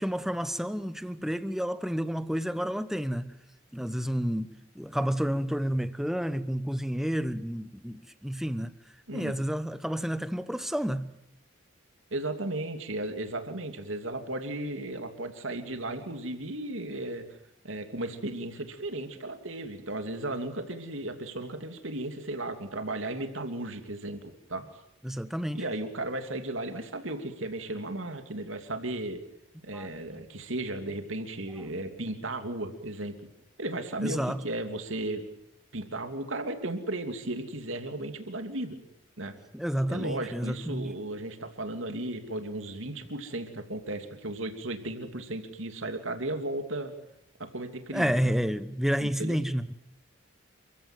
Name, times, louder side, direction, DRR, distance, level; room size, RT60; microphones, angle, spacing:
voice 1, 0.0-3.3 3.7-8.7 9.1-11.1 25.0-25.6 29.7-30.2 34.0-34.4 39.5-40.9 47.9-49.7, equal, ahead, 1.0 m, -30 dB
voice 2, 9.1-9.4 12.1-17.4 17.6-24.6 25.5-29.2 29.6-33.2 33.6-35.3 35.7-38.8 39.2-39.3 39.9-46.9 47.4-48.2 49.0-49.4, right 1 dB, 75° right, 3.0 m, -35 dB
28.5 x 16.0 x 9.3 m
head